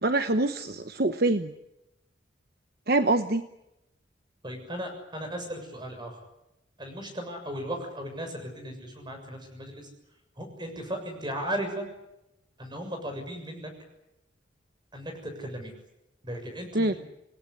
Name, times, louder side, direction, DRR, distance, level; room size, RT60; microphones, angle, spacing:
voice 1, 0.0-1.5 2.9-3.4 16.7-16.9, right 2 dB, 50° right, 9 dB, 1.0 m, -25 dB
voice 2, 4.4-6.2 6.8-9.9 10.4-11.9 12.6-13.7 14.9-15.7 16.2-17.0, equal, 25° right, 5 dB, 7.0 m, -36 dB
28.0 x 19.0 x 10.0 m, 0.90 s
head